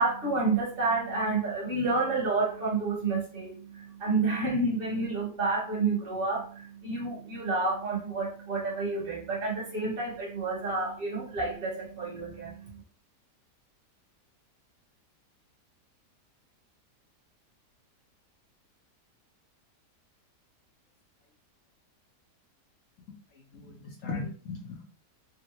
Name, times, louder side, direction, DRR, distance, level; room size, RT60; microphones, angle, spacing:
voice 1, 0.0-12.8, right 3 dB, 35° right, -4 dB, 1.2 m, -29 dB
voice 2, 23.3-24.8, left 4 dB, 65° left, 1 dB, 0.8 m, -38 dB
3.6 x 2.1 x 2.8 m, 0.42 s
omnidirectional pair, 1.8 m